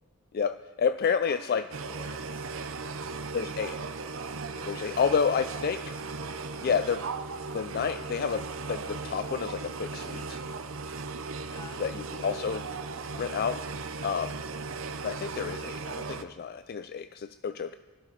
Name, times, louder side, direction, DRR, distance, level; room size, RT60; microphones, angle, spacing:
voice 1, 0.3-1.7 3.3-3.8 4.7-5.9 6.6-7.1 7.5-10.4 11.8-12.6 13.1-13.6 14.0-14.4 15.0-17.8, left 6 dB, 50° left, 12 dB, 0.4 m, -30 dB
voice 2, 1.3-3.0 4.5-5.4 6.6-7.0 11.5-12.6 15.4-15.7, left 2 dB, 20° left, 3 dB, 1.8 m, -51 dB
sound 1, 1.7-16.2, right 4 dB, 75° right, 0.8 m, -37 dB
23.5 x 12.0 x 4.1 m, 1.4 s
head